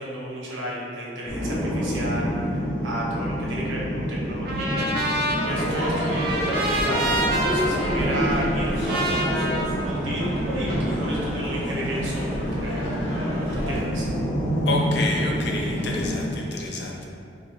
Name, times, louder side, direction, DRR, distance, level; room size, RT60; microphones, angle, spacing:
voice 1, 0.0-5.1 5.4-7.0 7.4-9.5 9.8-13.1 13.5-14.0, right 1 dB, 90° right, -5 dB, 0.8 m, -32 dB
sound 1, 1.3-16.3, equal, 5° left, 0.5 m, -28 dB
Trumpet, 4.5-10.7, right 1 dB, 55° right, 0.4 m, -28 dB
Crowd / Fireworks, 5.5-13.8, equal, 85° left, 1.1 m, -30 dB
voice 2, 14.7-17.1, left 2 dB, 60° left, -1 dB, 0.5 m, -29 dB
4.4 x 2.2 x 3.1 m, 2.4 s
head